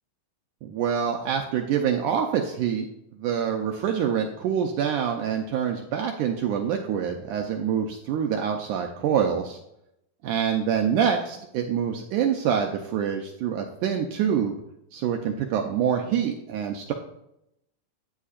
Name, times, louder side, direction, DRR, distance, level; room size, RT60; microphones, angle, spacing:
voice 1, 0.6-2.9 3.2-9.6 10.2-14.6 14.9-16.9, right 8 dB, 75° right, 3 dB, 1.9 m, -26 dB
11.0 x 9.6 x 2.5 m, 0.80 s
omnidirectional pair, 4.3 m